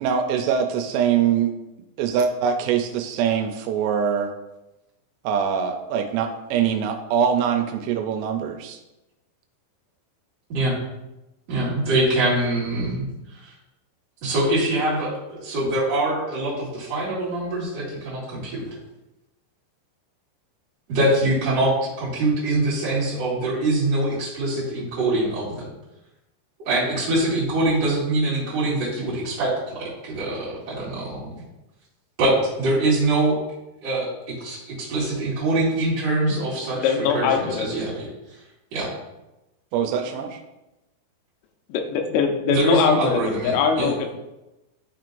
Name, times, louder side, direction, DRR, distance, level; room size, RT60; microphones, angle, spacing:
voice 1, 0.0-1.5 2.0-4.3 5.2-8.8 39.7-40.4, right 7 dB, 90° right, 5 dB, 3.2 m, -23 dB
voice 2, 11.5-13.5 14.2-18.7 20.9-25.7 26.6-31.3 32.2-33.4 33.8-38.4 38.7-38.9 42.5-43.9, right 2 dB, 45° right, -10 dB, 2.4 m, -24 dB
voice 3, 36.8-37.7 41.7-44.1, left 6 dB, 85° left, 4 dB, 3.4 m, -22 dB
12.0 x 4.6 x 2.5 m, 0.96 s
omnidirectional pair, 5.6 m